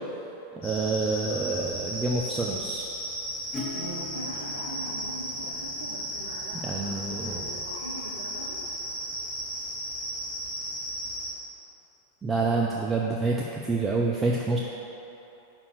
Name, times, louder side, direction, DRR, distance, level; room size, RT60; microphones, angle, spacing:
sound 1, 0.6-11.3, equal, 55° left, 1.4 m, -35 dB
voice 1, 0.6-2.9 6.6-7.5 12.2-14.6, right 3 dB, 15° right, -2 dB, 0.5 m, -27 dB
Acoustic guitar / Strum, 3.5-9.0, left 4 dB, 15° left, 1.0 m, -44 dB
voice 2, 3.7-8.6, right 1 dB, 70° right, -4 dB, 0.8 m, -41 dB
5.4 x 4.4 x 6.3 m, 3.0 s
figure-of-eight pair, 90°, 0 cm